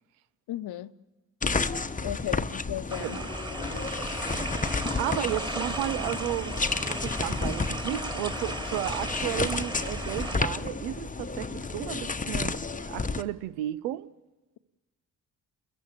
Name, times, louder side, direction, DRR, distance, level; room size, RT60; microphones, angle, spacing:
voice 1, 0.5-0.9 2.0-3.2 3.6-3.9, left 13 dB, 60° left, 0.9 m, -35 dB
sound 1, 1.4-13.2, left 3 dB, 20° left, 1.0 m, -32 dB
sound 2, 2.9-10.4, right 1 dB, 10° right, 2.5 m, -35 dB
voice 2, 4.6-6.6 6.9-12.6 12.9-14.1, right 13 dB, 85° right, 0.7 m, -33 dB
30.0 x 14.5 x 8.6 m
hypercardioid pair, 40°, 43 cm